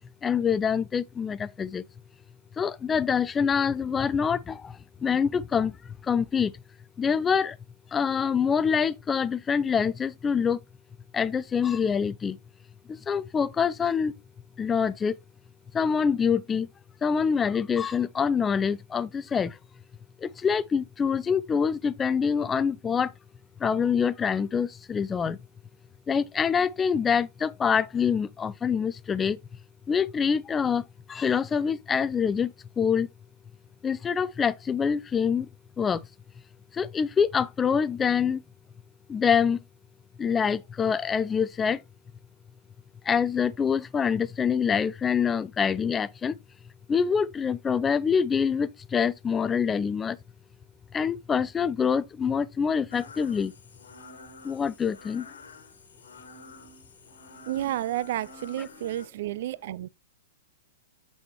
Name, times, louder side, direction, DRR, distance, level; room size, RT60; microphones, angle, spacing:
voice 1, 0.2-1.8 2.6-6.5 7.0-7.6 7.9-10.6 11.1-12.4 12.9-14.1 14.6-15.2 15.7-16.7 17.0-19.6 20.2-23.1 23.6-25.4 26.1-29.4 29.9-33.1 33.8-35.5 35.8-36.1 36.7-38.4 39.1-39.6 40.2-41.8 43.0-46.4 46.9-50.2 50.9-53.5 54.4-55.3, left 6 dB, 15° left, 0.3 m, -25 dB
sound 1, 52.9-59.1, left 4 dB, 85° left, 1.4 m, -49 dB
voice 2, 57.5-59.9, right 13 dB, 60° right, 0.3 m, -31 dB
7.7 x 4.2 x 2.9 m
hypercardioid pair, 125°, 0 cm